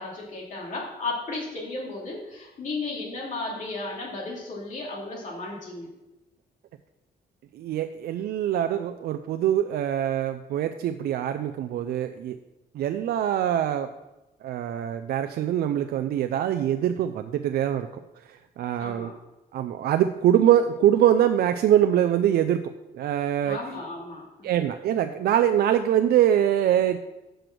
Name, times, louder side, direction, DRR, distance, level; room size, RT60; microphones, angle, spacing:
voice 1, 0.0-5.9 18.8-19.1 23.4-24.5, left 3 dB, 55° left, -3 dB, 2.7 m, -34 dB
voice 2, 7.5-12.4 12.7-13.9 14.4-17.9 18.3-19.1 19.5-22.6 22.9-23.6 24.4-27.0, right 10 dB, 85° right, 8 dB, 0.5 m, -23 dB
7.7 x 6.8 x 6.1 m, 1.0 s
cardioid pair, 145°, 16 cm